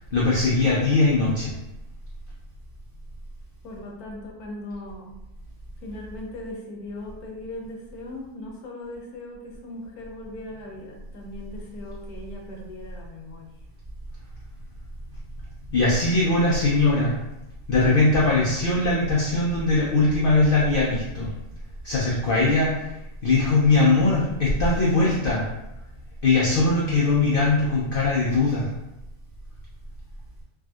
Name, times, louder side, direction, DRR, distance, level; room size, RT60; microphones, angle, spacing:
voice 1, 0.1-1.6 15.7-17.1 17.7-21.3 21.8-22.8 23.2-25.4 26.2-28.7, left 3 dB, 90° left, -6 dB, 0.4 m, -20 dB
voice 2, 3.6-5.2 5.8-13.6, left 1 dB, 70° left, 0 dB, 1.1 m, -39 dB
3.5 x 2.5 x 2.3 m, 0.95 s
omnidirectional pair, 1.7 m